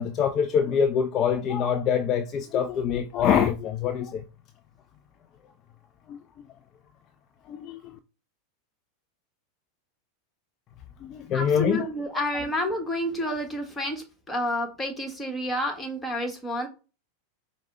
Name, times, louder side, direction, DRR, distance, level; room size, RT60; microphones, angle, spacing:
voice 1, 0.0-4.2 6.1-6.2 7.5-7.9 11.0-11.9, left 7 dB, 40° left, 0.4 m, -25 dB
voice 2, 11.3-16.7, left 1 dB, 10° left, 1.2 m, -29 dB
4.8 x 2.1 x 3.6 m
hypercardioid pair, 100°, 0 cm